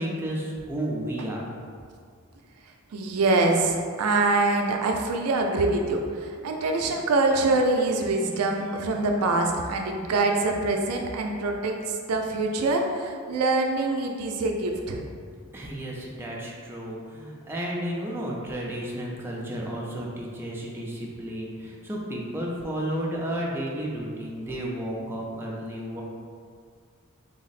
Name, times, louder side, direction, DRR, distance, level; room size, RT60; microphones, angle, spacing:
voice 1, 0.0-1.5 15.5-26.0, right 1 dB, 10° right, -4 dB, 0.4 m, -32 dB
voice 2, 2.9-15.0, right 2 dB, 75° right, 2 dB, 0.4 m, -24 dB
3.4 x 2.0 x 3.9 m, 2.1 s
head